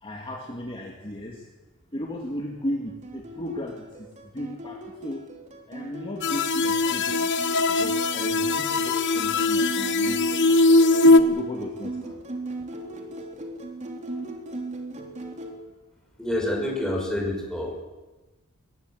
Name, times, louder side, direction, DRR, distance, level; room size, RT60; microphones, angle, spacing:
voice 1, 0.0-1.4 1.9-5.2 5.7-7.3 7.7-10.4 11.0-12.2, left 1 dB, 25° left, 0 dB, 2.3 m, -35 dB
sound 1, 3.0-15.5, right 1 dB, 35° right, 3.1 m, -37 dB
sound 2, 6.2-11.2, left 2 dB, 55° left, 1.2 m, -20 dB
voice 2, 16.2-17.8, left 1 dB, 5° left, 0 dB, 5.7 m, -27 dB
22.0 x 19.5 x 7.9 m, 1.2 s
head